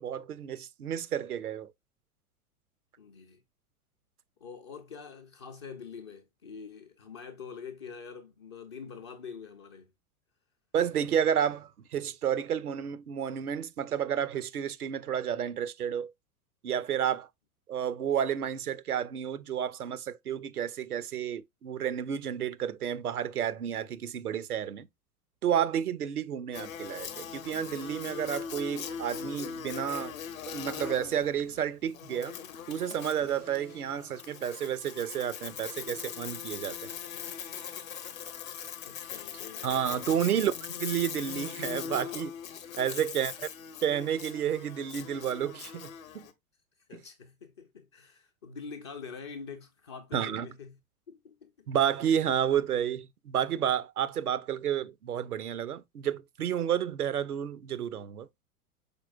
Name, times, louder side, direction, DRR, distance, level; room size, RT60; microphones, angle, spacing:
voice 1, 0.0-1.7 10.7-16.1 16.6-17.3 17.7-24.9 25.4-30.2 30.5-32.4 32.7-36.9 39.6-40.5 40.8-42.3 42.8-43.3 43.8-45.9 46.1-46.3 50.1-50.5 51.7-58.3, right 9 dB, 80° right, 0.5 m, -31 dB
voice 2, 3.0-3.4 4.4-9.9 38.8-39.7 40.1-40.4 43.0-43.1 43.4-43.5 46.9-50.8 51.1-51.7, left 6 dB, 20° left, 0.3 m, -45 dB
Buzz, 26.5-46.3, left 8 dB, 65° left, 0.8 m, -41 dB
5.2 x 4.2 x 2.2 m
figure-of-eight pair, 95°, 44 cm